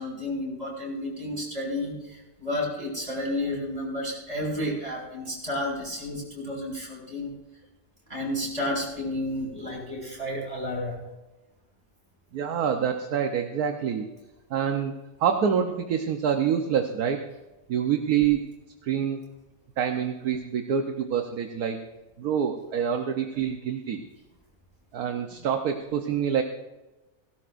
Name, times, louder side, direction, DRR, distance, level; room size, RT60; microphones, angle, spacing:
voice 1, 0.0-7.3 8.1-11.0, left 1 dB, 25° right, -3 dB, 6.0 m, -31 dB
voice 2, 12.3-14.1 14.5-14.9 15.2-17.2 17.7-18.4 18.8-19.2 19.8-21.8 22.2-24.0 24.9-26.4, right 8 dB, 65° right, 5 dB, 1.4 m, -26 dB
18.0 x 17.0 x 2.6 m, 1.1 s
omnidirectional pair, 1.8 m